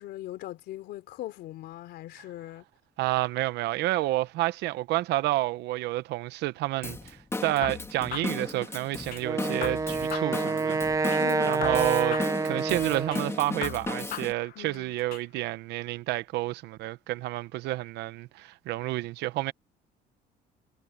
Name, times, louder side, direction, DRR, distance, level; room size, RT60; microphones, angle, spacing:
voice 1, 0.0-2.6 11.2-11.8 14.5-15.0, left 15 dB, 80° left, 3.2 m, -40 dB
voice 2, 3.0-11.1 11.4-19.5, right 17 dB, 85° right, 0.9 m, -30 dB
Drum kit / Drum, 6.8-14.3, left 2 dB, 15° left, 2.9 m, -36 dB
sound 1, 7.6-9.2 9.6-11.2 11.6-13.2 13.6-15.2, left 12 dB, 60° left, 0.8 m, -39 dB
Wind instrument woodwind instrument, 9.2-13.5, right 4 dB, 20° right, 1.0 m, -28 dB
cardioid pair, 110°, 17 cm